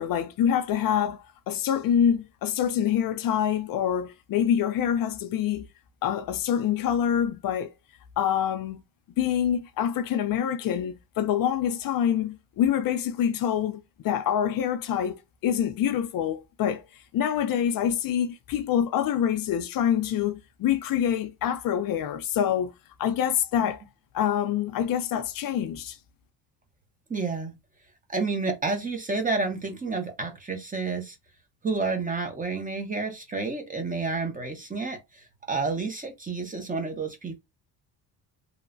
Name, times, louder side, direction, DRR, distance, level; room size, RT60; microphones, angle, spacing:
voice 1, 0.0-5.7 6.0-7.7 8.2-8.8 9.2-16.8 17.1-22.7 23.0-23.8 24.1-26.0, left 9 dB, 60° left, 0.5 m, -26 dB
voice 2, 27.1-27.5 28.1-31.1 31.6-37.4, right 4 dB, 20° right, 0.8 m, -30 dB
3.0 x 2.1 x 2.5 m
cardioid pair, 95°, 40 cm